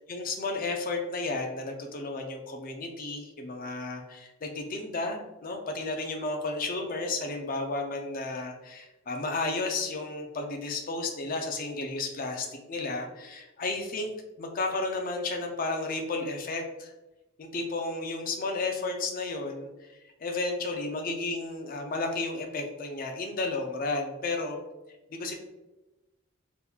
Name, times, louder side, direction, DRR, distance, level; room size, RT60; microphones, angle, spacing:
voice 1, 0.0-14.1 14.4-16.9 17.4-19.7 20.2-24.6 25.1-25.3, left 3 dB, 40° left, 3 dB, 0.4 m, -33 dB
3.4 x 3.0 x 2.3 m, 1.0 s
head